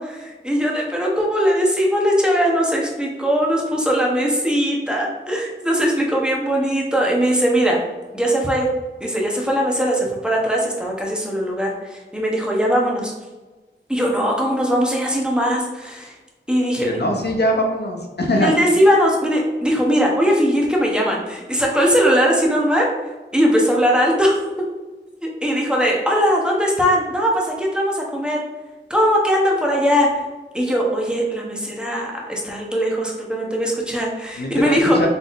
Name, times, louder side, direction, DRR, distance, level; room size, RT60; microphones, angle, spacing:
voice 1, 0.0-7.8 8.1-8.7 9.0-13.1 13.9-16.1 16.5-17.0 18.3-22.9 23.3-24.4 25.2-28.4 28.9-30.2 30.5-35.1, equal, 5° right, -2 dB, 0.9 m, -20 dB
voice 2, 16.8-18.5 34.4-35.1, equal, 55° left, 0 dB, 0.7 m, -22 dB
4.1 x 3.6 x 2.5 m, 1.2 s
wide cardioid pair, 60°, 20 cm